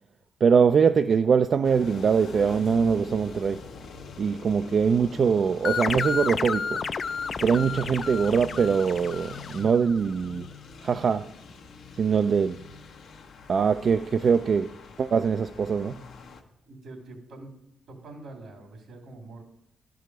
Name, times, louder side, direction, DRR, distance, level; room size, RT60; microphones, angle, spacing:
voice 1, 0.4-3.7 4.2-6.8 7.4-10.5 10.8-11.3 12.0-12.6 13.5-16.0, right 6 dB, 55° right, 0.3 m, -23 dB
sound 1, 1.6-16.4, left 4 dB, 80° left, 1.0 m, -44 dB
sound 2, 5.6-10.0, left 5 dB, 50° left, 0.3 m, -31 dB
voice 2, 16.7-17.6 17.9-19.4, right 2 dB, 80° right, 2.6 m, -44 dB
11.5 x 4.8 x 6.0 m
cardioid pair, 80°, 0 cm